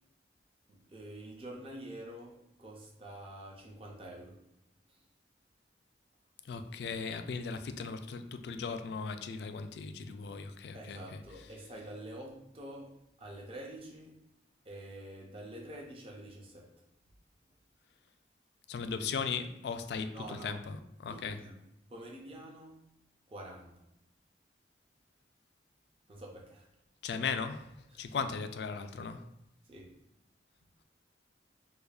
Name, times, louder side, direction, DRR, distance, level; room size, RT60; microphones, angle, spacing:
voice 1, 0.7-4.5 4.9-5.0 10.7-14.3 14.6-16.9 18.9-19.2 20.1-20.7 21.1-22.9 23.3-23.9 26.1-26.7 27.9-28.1 29.6-30.0, right 1 dB, 30° right, 0.5 m, -47 dB
voice 2, 6.5-11.0 18.7-20.1 20.4-20.8 21.0-21.4 27.0-27.7 28.0-29.2, left 5 dB, 65° left, 0.3 m, -37 dB
4.9 x 2.3 x 2.3 m
head